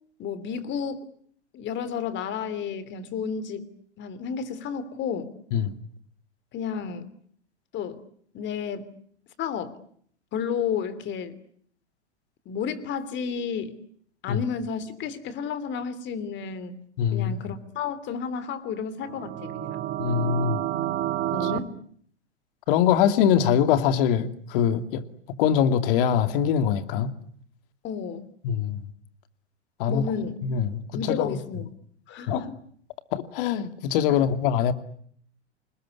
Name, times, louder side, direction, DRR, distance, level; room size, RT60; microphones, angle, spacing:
voice 1, 0.2-1.0 1.5-3.7 4.0-5.3 6.5-7.1 7.7-8.0 8.3-8.9 9.4-9.8 10.3-11.4 12.4-13.8 14.2-16.8 17.1-19.8 21.3-21.8 27.8-28.3 29.9-30.4 30.9-31.7 32.1-32.6 34.2-34.3, left 6 dB, 35° left, 3.2 m, -31 dB
voice 2, 17.0-17.4 20.0-20.6 22.7-25.0 25.4-27.1 28.4-28.8 29.8-30.1 30.4-30.8 31.1-31.3 32.3-32.4 33.1-34.7, left 8 dB, 50° left, 2.6 m, -23 dB
sound 1, 19.0-21.6, right 13 dB, 30° right, 1.6 m, -29 dB
28.0 x 20.5 x 9.8 m
hypercardioid pair, 105°, 34 cm